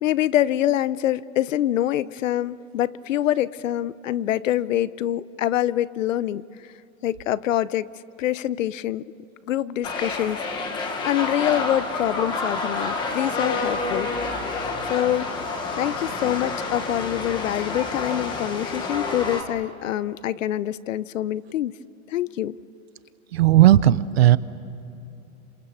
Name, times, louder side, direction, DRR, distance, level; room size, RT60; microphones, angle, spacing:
voice 1, 0.0-6.4 7.0-7.9 8.2-9.0 9.5-10.4 11.0-14.1 14.9-15.3 15.8-21.7 22.1-22.6, left 12 dB, 65° left, 19 dB, 0.7 m, -25 dB
sound 1, 9.8-19.4, left 3 dB, 10° left, 1.0 m, -28 dB
voice 2, 23.3-24.4, right 13 dB, 50° right, 17 dB, 0.7 m, -15 dB
28.0 x 26.0 x 7.0 m, 2.9 s
supercardioid pair, 175°, 42 cm